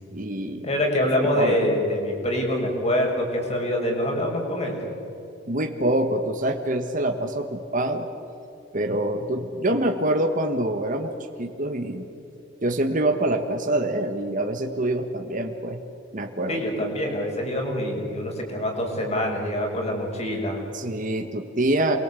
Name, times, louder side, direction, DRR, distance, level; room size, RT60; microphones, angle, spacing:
voice 1, 0.1-0.7 1.3-1.6 5.5-8.1 8.7-11.1 11.4-12.1 12.6-15.8 16.1-16.6 20.7-22.0, right 1 dB, 45° right, 4 dB, 1.6 m, -25 dB
voice 2, 0.6-4.8 16.5-20.6, left 1 dB, 35° left, 1 dB, 5.9 m, -25 dB
28.5 x 22.5 x 8.5 m, 2.8 s
head